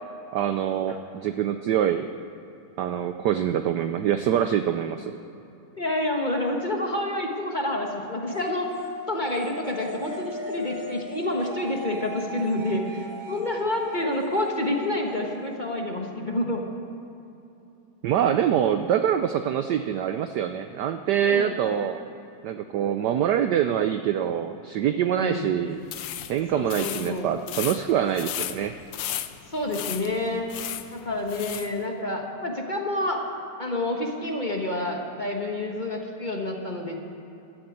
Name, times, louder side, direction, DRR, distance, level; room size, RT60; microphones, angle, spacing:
voice 1, 0.3-2.1 2.8-5.2 18.0-22.0 22.4-25.8 26.3-28.7, right 9 dB, 75° right, 9 dB, 1.0 m, -25 dB
voice 2, 5.8-8.7 9.1-16.6 21.2-21.6 25.1-25.5 26.5-27.3 29.5-30.5 30.9-33.2 33.6-37.0, left 1 dB, 25° left, 1 dB, 1.3 m, -28 dB
sound 1, 8.3-15.8, left 1 dB, 25° right, 1.3 m, -39 dB
sound 2, 25.8-31.7, left 11 dB, 70° left, 1.3 m, -35 dB
13.0 x 11.0 x 8.7 m, 2.9 s
omnidirectional pair, 2.3 m